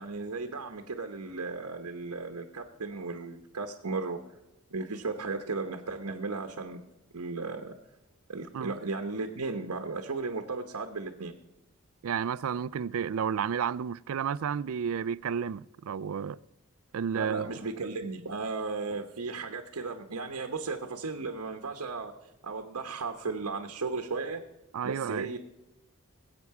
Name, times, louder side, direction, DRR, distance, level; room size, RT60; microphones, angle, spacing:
voice 1, 0.0-4.2 4.7-6.8 7.1-7.7 8.3-11.3 17.1-22.1 22.4-24.4 24.8-25.4, right 3 dB, 85° right, 1.0 m, -35 dB
voice 2, 12.0-16.4 16.9-17.6 24.7-25.3, right 7 dB, 70° right, 0.4 m, -31 dB
20.5 x 8.4 x 4.8 m
head